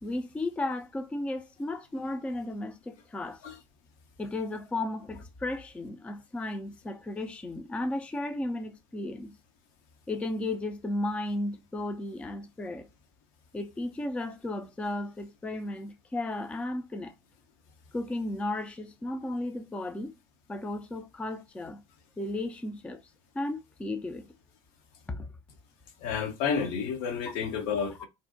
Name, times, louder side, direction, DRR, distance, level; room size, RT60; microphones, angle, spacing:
voice 1, 0.0-3.4 4.2-9.3 10.1-12.9 13.5-17.1 17.9-20.1 20.5-21.8 22.2-23.0 23.3-24.3 25.1-25.3, left 2 dB, 5° left, 0.3 m, -34 dB
voice 2, 26.0-28.1, left 6 dB, 55° left, 0.6 m, -30 dB
2.5 x 2.1 x 2.4 m
figure-of-eight pair, 65°, 16 cm